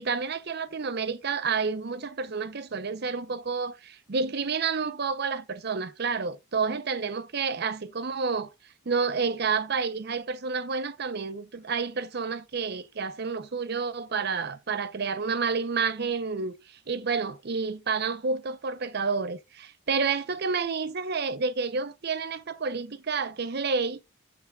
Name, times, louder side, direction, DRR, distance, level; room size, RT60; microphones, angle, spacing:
voice 1, 0.0-8.5 8.9-16.5 16.9-24.0, right 5 dB, 50° right, 0.7 m, -29 dB
12.5 x 6.0 x 2.3 m
head